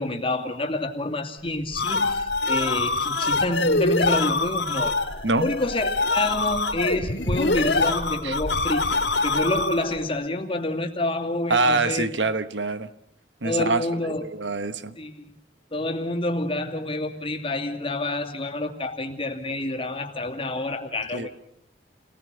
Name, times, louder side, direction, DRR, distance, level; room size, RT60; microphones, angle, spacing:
voice 1, 0.0-5.0 5.4-12.1 13.4-14.3 15.0-15.3 15.7-21.3, left 2 dB, 30° left, 2.6 m, -28 dB
sound 1, 1.5-10.0, left 3 dB, 75° left, 2.8 m, -24 dB
voice 2, 11.5-12.9 13.4-13.8 14.2-15.0 21.1-21.3, right 3 dB, 80° right, 1.2 m, -24 dB
29.5 x 19.5 x 6.9 m
head